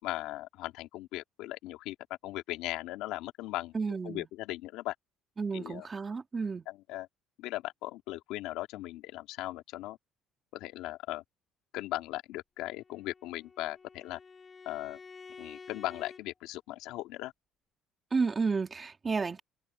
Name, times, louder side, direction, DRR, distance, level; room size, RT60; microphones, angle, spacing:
voice 1, 0.0-2.0 2.2-4.9 5.5-5.9 6.7-7.1 7.4-10.0 10.5-11.2 11.7-14.2 14.7-15.0 15.4-17.3, left 16 dB, 85° left, 2.6 m, -38 dB
voice 2, 3.7-4.2 5.4-6.6 18.1-19.4, right 4 dB, 20° right, 2.0 m, -31 dB
Bowed string instrument, 12.7-16.2, left 5 dB, 25° left, 3.7 m, -51 dB
cardioid pair, 150°, 0 cm